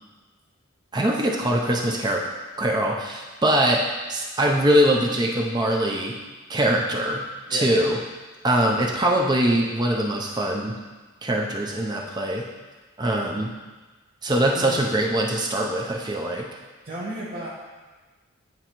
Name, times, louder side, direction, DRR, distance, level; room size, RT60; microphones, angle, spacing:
voice 1, 0.9-2.2 2.6-3.8 4.1-6.2 6.5-7.2 7.5-8.0 8.4-10.8 11.2-12.4 13.0-13.5 14.2-16.5, right 1 dB, 20° right, -1 dB, 0.5 m, -22 dB
voice 2, 7.5-7.8 14.5-14.8 16.8-17.5, right 1 dB, 45° right, -10 dB, 1.1 m, -33 dB
9.1 x 3.9 x 3.0 m, 1.3 s
head